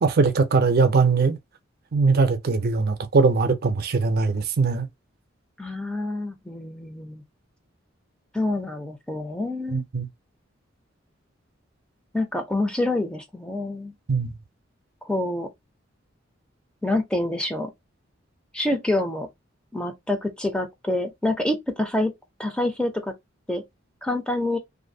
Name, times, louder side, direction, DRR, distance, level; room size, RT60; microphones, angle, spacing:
voice 1, 0.0-1.4 1.9-4.9 9.7-10.1 14.1-14.3, right 4 dB, 50° right, 0.5 m, -21 dB
voice 2, 5.6-7.2 8.3-9.8 12.1-13.9 15.0-15.5 16.8-17.7 18.5-19.3 19.7-22.1 22.4-23.1 23.5-23.6 24.0-24.6, left 1 dB, 5° left, 0.4 m, -27 dB
2.5 x 2.5 x 2.6 m
head